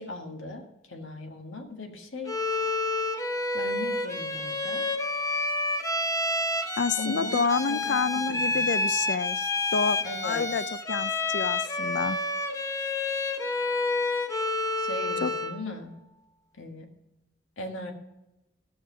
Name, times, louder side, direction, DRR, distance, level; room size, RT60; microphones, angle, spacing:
voice 1, 0.0-2.4 3.5-4.8 7.0-7.4 7.7-8.6 10.0-10.5 14.8-15.9 16.5-16.9 17.6-17.9, left 2 dB, 85° left, 3 dB, 1.7 m, -38 dB
Bowed string instrument, 2.3-15.6, left 2 dB, 15° left, 0.8 m, -29 dB
voice 2, 6.8-10.0 10.2-12.2 15.2-15.3, left 5 dB, 60° left, 16 dB, 0.4 m, -28 dB
13.0 x 7.5 x 5.7 m, 0.92 s
head